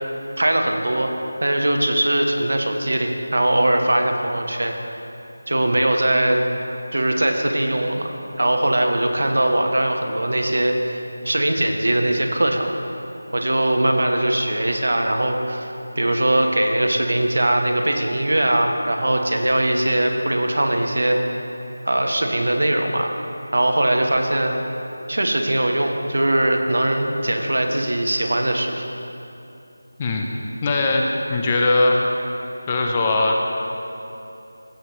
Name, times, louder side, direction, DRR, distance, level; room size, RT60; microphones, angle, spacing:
voice 1, 0.4-1.1 1.4-4.7 5.5-6.4 6.9-8.1 8.4-11.0 11.2-12.7 13.3-21.2 21.8-23.1 23.5-24.5 25.1-28.8, right 1 dB, 75° right, 3 dB, 1.1 m, -21 dB
voice 2, 30.0-30.3 30.6-32.0 32.7-33.4, left 2 dB, 15° left, 0 dB, 0.4 m, -20 dB
16.0 x 7.4 x 3.1 m, 2.9 s
figure-of-eight pair, 175°, 0 cm